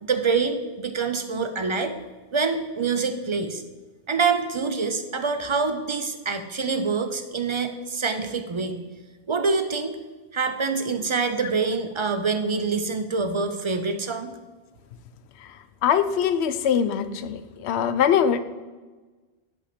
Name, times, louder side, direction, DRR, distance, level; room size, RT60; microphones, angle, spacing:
voice 1, 0.0-1.9 2.3-3.6 4.1-8.8 9.3-10.0 10.3-14.3, right 4 dB, 45° right, 8 dB, 0.3 m, -25 dB
voice 2, 15.8-18.4, left 8 dB, 80° left, 11 dB, 0.8 m, -22 dB
10.0 x 3.6 x 5.0 m, 1.3 s
omnidirectional pair, 1.1 m